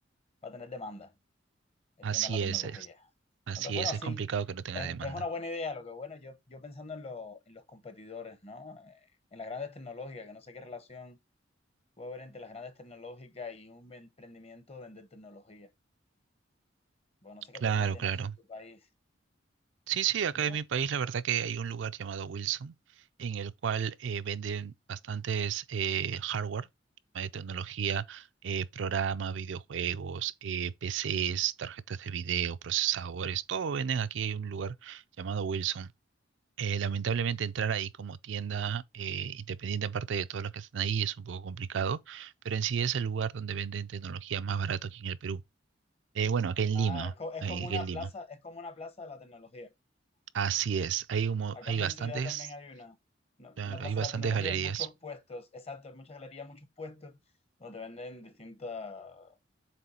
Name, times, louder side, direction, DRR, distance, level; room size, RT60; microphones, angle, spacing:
voice 1, 0.4-1.1 2.0-2.9 3.5-4.3 4.7-9.1 9.3-11.2 12.0-15.7 17.2-18.9 20.4-20.6 46.7-49.7 51.5-53.0 53.4-57.1 57.6-59.4, left 3 dB, 30° left, 0.9 m, -42 dB
voice 2, 2.0-2.8 3.5-5.2 17.6-18.4 19.9-22.7 23.2-26.7 27.1-35.9 36.6-45.4 46.1-47.1 47.4-48.1 50.3-52.5 53.6-54.9, right 7 dB, 65° right, 0.4 m, -32 dB
7.6 x 3.1 x 4.2 m
head